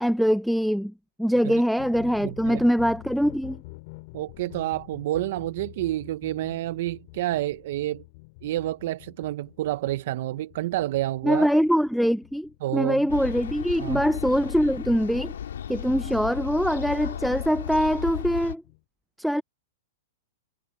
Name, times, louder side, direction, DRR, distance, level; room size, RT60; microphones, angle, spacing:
voice 1, 0.0-0.9 1.2-3.6 11.2-15.3 15.7-18.6 19.2-19.4, equal, ahead, 0.4 m, -23 dB
sound 1, 1.8-18.8, left 25 dB, 50° left, 4.8 m, -48 dB
voice 2, 2.2-2.6 4.1-8.0 8.4-11.5 12.6-13.1 13.8-14.0, right 15 dB, 60° right, 0.6 m, -29 dB
sound 2, 13.1-18.6, left 9 dB, 85° left, 2.0 m, -34 dB
hypercardioid pair, 140°, 0 cm